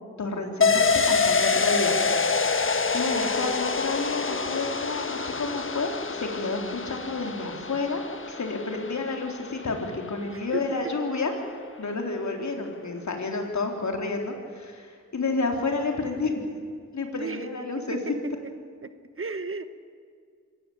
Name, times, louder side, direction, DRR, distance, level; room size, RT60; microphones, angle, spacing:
voice 1, 0.2-2.0 2.9-11.3 11.8-16.5 16.9-18.0, left 3 dB, 60° left, 3 dB, 3.8 m, -30 dB
sound 1, 0.6-10.0 10.3-10.4, left 4 dB, 40° left, 1.5 m, -26 dB
voice 2, 3.1-3.5 10.3-10.9 17.2-17.5 17.9-18.5 18.8-19.6, right 4 dB, 45° right, 11 dB, 1.3 m, -35 dB
25.5 x 15.0 x 8.7 m, 2.1 s
cardioid pair, 70°, 32 cm